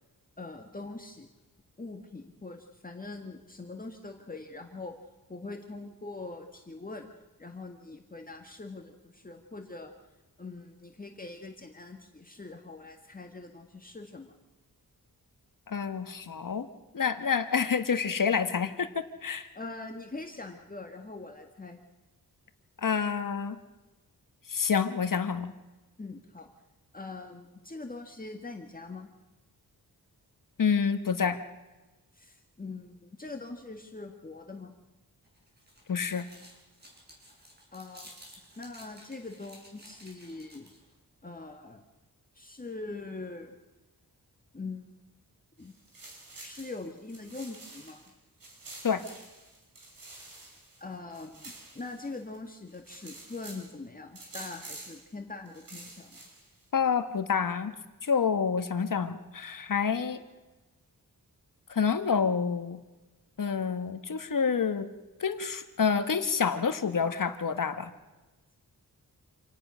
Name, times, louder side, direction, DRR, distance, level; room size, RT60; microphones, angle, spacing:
voice 1, 0.4-1.3 1.8-4.9 5.3-7.1 7.4-9.9 10.4-14.4 19.6-21.8 26.0-26.5 26.9-29.1 32.1-34.7 37.7-38.1 38.6-40.7 41.2-41.8 42.3-43.6 44.5-44.9 45.6-45.7 46.4-48.0 50.8-56.2, left 3 dB, 25° left, 3 dB, 1.9 m, -42 dB
voice 2, 15.7-16.7 16.9-19.5 22.8-23.6 24.5-25.5 30.6-31.4 35.9-36.3 48.8-49.0 56.7-57.7 58.0-60.2 61.7-62.8 63.4-64.9 65.2-67.9, left 6 dB, 60° left, 9 dB, 1.6 m, -28 dB
sound 1, 35.2-40.9, equal, 25° right, 6.9 m, -54 dB
sound 2, 45.6-48.1 48.4-52.4 52.7-53.7 54.2-55.1 55.5-56.6, right 2 dB, 65° right, 6.4 m, -48 dB
27.5 x 18.5 x 6.4 m, 1.1 s
wide cardioid pair, 140°, 37 cm